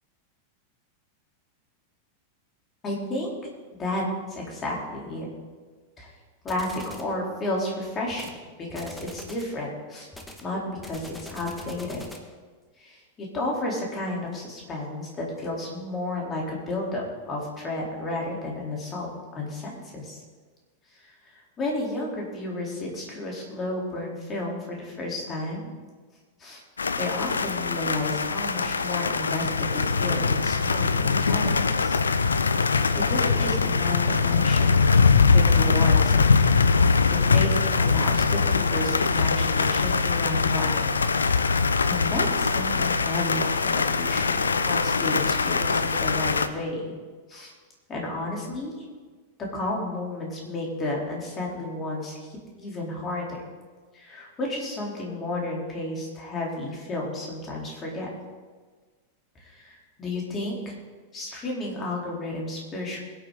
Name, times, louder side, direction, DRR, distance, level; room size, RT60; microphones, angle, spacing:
voice 1, 2.8-3.3 3.8-4.0 4.3-5.3 6.0-6.1 6.4-10.1 10.4-10.6 10.8-12.0 12.8-20.2 20.9-25.7 26.4-26.6 27.0-32.0 33.0-34.8 35.3-36.5 36.8-40.9 41.4-47.0 47.3-47.5 47.9-48.8 49.5-52.3 52.6-53.4 53.9-58.1 59.4-60.6 61.1-63.1, left 2 dB, 25° left, -2 dB, 4.1 m, -32 dB
sound 1, 6.5-7.1 8.1-8.4 8.7-9.5 10.1-12.3, left 1 dB, 5° left, 1.6 m, -43 dB
sound 2, 26.8-46.5, left 4 dB, 75° left, 0.6 m, -22 dB
22.0 x 8.8 x 4.2 m, 1.4 s
figure-of-eight pair, 90°, 0 cm